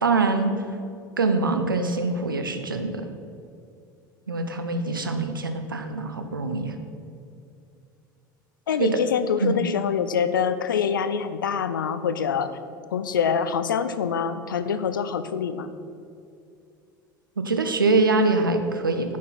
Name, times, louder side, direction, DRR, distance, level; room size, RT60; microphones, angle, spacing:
voice 1, 0.0-0.5 1.2-3.0 4.3-6.8 8.8-9.0 9.4-9.6 17.4-19.2, right 3 dB, 85° right, 7 dB, 0.7 m, -24 dB
voice 2, 8.7-12.5 12.9-15.7, left 7 dB, 75° left, 12 dB, 0.5 m, -25 dB
10.0 x 4.6 x 5.7 m, 2.4 s
figure-of-eight pair, 70°, 11 cm